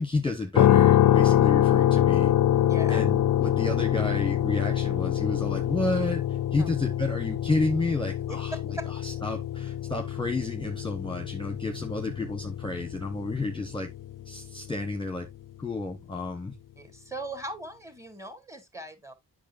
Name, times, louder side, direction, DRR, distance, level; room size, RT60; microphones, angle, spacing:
voice 1, 0.0-2.3 2.9-8.5 9.0-13.9 14.2-15.3 15.6-16.6, left 2 dB, 10° left, 1.2 m, -31 dB
sound 1, 0.6-14.6, left 11 dB, 55° left, 0.5 m, -25 dB
voice 2, 2.6-3.0 6.6-6.7 8.3-8.4 8.8-8.9 16.8-19.1, right 1 dB, 5° right, 2.0 m, -39 dB
8.4 x 6.3 x 2.6 m
cardioid pair, 60°, 40 cm